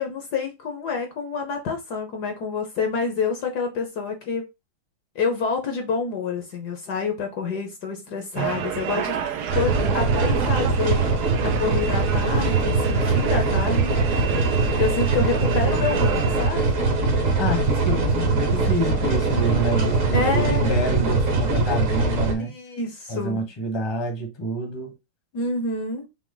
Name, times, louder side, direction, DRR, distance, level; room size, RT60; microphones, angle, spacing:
voice 1, 0.0-4.4 5.1-9.2 9.5-11.2 11.4-16.7 20.1-20.7 22.4-23.5 25.3-26.1, left 4 dB, 60° left, 1.2 m, -28 dB
sound 1, 8.4-16.5, right 9 dB, 75° right, 0.9 m, -31 dB
sound 2, 9.5-22.3, right 3 dB, 50° right, 1.2 m, -22 dB
voice 2, 17.4-22.5 23.1-24.9, right 1 dB, 20° left, 0.7 m, -27 dB
6.0 x 2.0 x 3.8 m
omnidirectional pair, 2.3 m